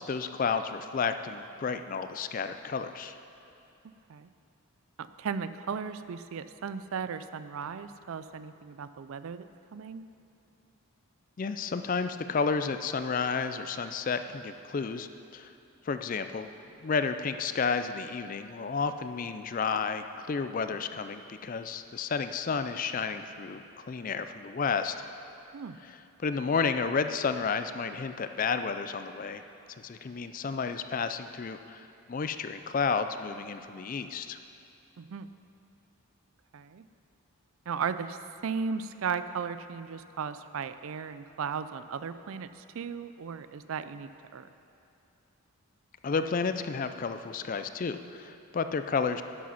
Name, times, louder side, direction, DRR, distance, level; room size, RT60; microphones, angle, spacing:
voice 1, 0.0-3.2 11.4-15.5 15.8-16.5 16.8-24.9 25.8-29.4 29.8-34.4 46.0-49.2, left 5 dB, 35° left, 10 dB, 0.3 m, -31 dB
voice 2, 5.0-9.4 9.7-10.0 25.5-25.8 35.0-35.3 36.5-36.8 37.7-44.5, right 6 dB, 65° right, 12 dB, 0.4 m, -36 dB
11.0 x 7.6 x 5.7 m, 2.7 s
head